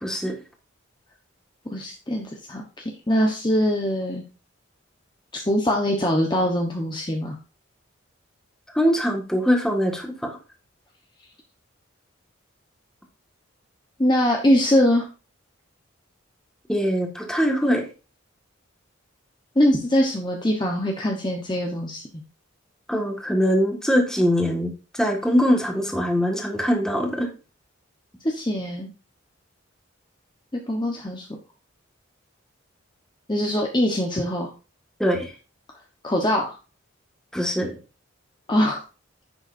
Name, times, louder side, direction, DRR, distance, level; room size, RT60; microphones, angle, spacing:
voice 1, 0.0-0.3 8.7-10.4 16.7-17.9 22.9-27.3 35.0-35.3 37.3-37.7, equal, 5° left, 2 dB, 1.7 m, -22 dB
voice 2, 1.7-4.2 5.3-7.3 14.0-15.1 19.6-22.0 28.2-28.9 30.5-31.3 33.3-34.5 36.0-36.5 38.5-38.8, equal, 20° left, 1 dB, 1.0 m, -22 dB
10.5 x 8.0 x 2.6 m, 0.33 s
head